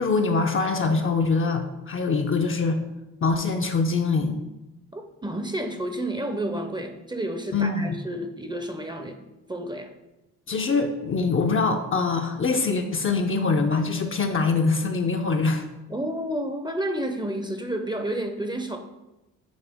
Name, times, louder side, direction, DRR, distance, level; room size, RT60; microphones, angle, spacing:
voice 1, 0.0-2.8 3.2-4.4 7.5-8.0 10.5-15.7, left 4 dB, 30° left, 4 dB, 0.6 m, -24 dB
voice 2, 4.9-9.2 9.5-9.9 15.9-18.8, right 1 dB, 10° right, 5 dB, 0.6 m, -30 dB
8.9 x 3.2 x 3.5 m, 0.99 s
cardioid pair, 85°, 39 cm